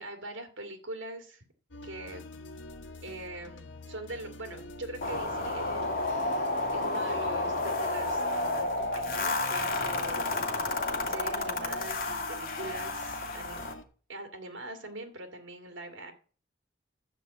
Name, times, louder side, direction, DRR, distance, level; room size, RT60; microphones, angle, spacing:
voice 1, 0.0-1.4 1.8-2.2 3.0-6.4 6.7-10.3 10.7-13.8 14.1-16.1, right 1 dB, 85° right, 5 dB, 2.4 m, -42 dB
sound 1, 1.7-13.8, left 2 dB, 75° left, 1.6 m, -47 dB
sound 2, 5.0-13.7, left 2 dB, 50° left, 2.3 m, -31 dB
12.5 x 5.3 x 8.3 m, 0.40 s
head